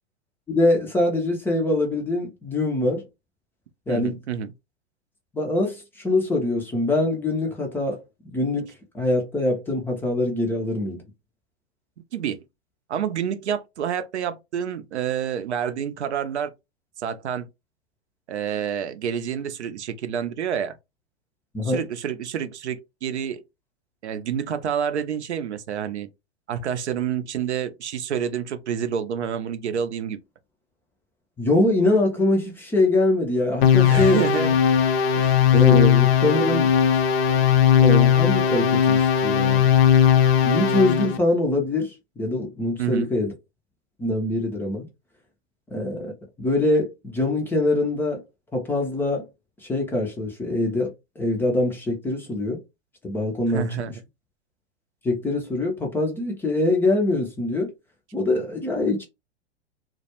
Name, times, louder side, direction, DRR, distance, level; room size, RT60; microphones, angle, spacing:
voice 1, 0.5-3.0 3.9-4.2 5.3-8.0 8.3-11.0 21.5-21.8 31.4-34.3 35.5-36.7 37.8-39.7 40.4-43.3 44.0-44.9 45.7-46.1 46.4-48.2 48.5-49.3 49.6-50.9 51.2-52.6 53.0-53.9 55.0-57.7 58.1-59.0, left 2 dB, 5° left, 0.4 m, -23 dB
voice 2, 3.9-4.5 12.1-12.4 12.9-16.5 17.0-17.5 18.3-20.8 21.6-23.4 24.0-26.1 26.5-30.2 33.7-34.6 35.1-35.3 42.8-43.1 53.5-53.9, right 8 dB, 85° right, 0.5 m, -28 dB
sound 1, 33.6-41.2, left 8 dB, 65° left, 0.6 m, -18 dB
2.2 x 2.1 x 2.8 m
hypercardioid pair, 115°, 33 cm